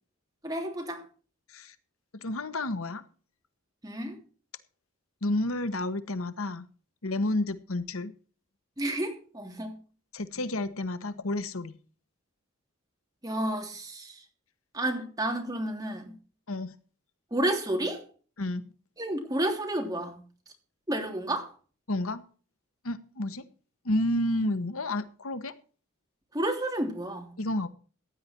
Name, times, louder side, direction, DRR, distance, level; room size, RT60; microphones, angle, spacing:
voice 1, 0.4-1.0 3.8-4.2 8.8-9.7 13.2-14.2 14.7-16.2 17.3-18.0 19.0-20.2 20.9-21.5 26.3-27.3, right 1 dB, 15° right, 3.2 m, -31 dB
voice 2, 2.1-3.0 5.2-6.7 7.0-8.1 10.1-11.7 16.5-16.7 18.4-18.7 21.9-22.2 22.8-23.5 23.8-25.5 27.4-27.7, left 1 dB, 85° left, 1.3 m, -30 dB
15.5 x 9.9 x 4.5 m
head